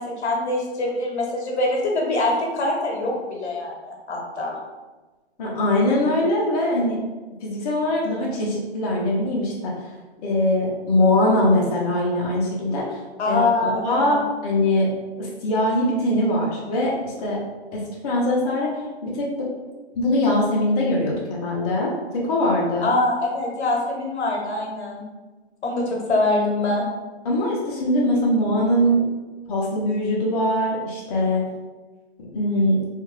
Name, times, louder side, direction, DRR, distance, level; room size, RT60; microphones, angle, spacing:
voice 1, 0.0-4.5 13.2-14.2 22.8-25.0 25.6-26.9, left 2 dB, 85° left, -1 dB, 1.0 m, -24 dB
voice 2, 5.4-7.0 7.4-9.7 10.2-13.0 13.3-14.9 15.2-17.4 17.7-18.7 19.0-19.5 19.9-22.8 27.2-29.0 29.5-31.4 32.3-32.8, left 1 dB, 35° left, -5 dB, 0.7 m, -22 dB
2.5 x 2.4 x 3.1 m, 1.2 s
hypercardioid pair, 150°, 33 cm